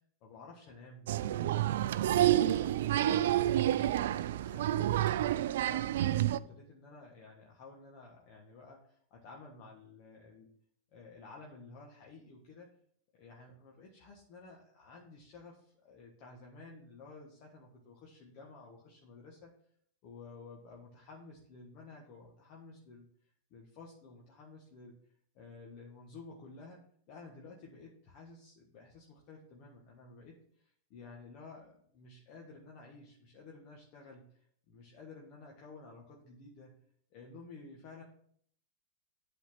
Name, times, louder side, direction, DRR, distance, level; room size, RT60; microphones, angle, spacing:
voice 1, 0.2-1.6 1.9-4.9 5.5-10.5 10.9-12.7 13.1-19.5 20.0-23.1 23.5-24.9 25.3-26.8 27.1-34.4 34.7-36.8 37.1-38.0, left 3 dB, 50° left, -2 dB, 1.5 m, -53 dB
Applause, 1.1-6.4, right 13 dB, 70° right, 0.3 m, -29 dB
8.3 x 4.2 x 6.0 m, 0.63 s
hypercardioid pair, 100°, 0 cm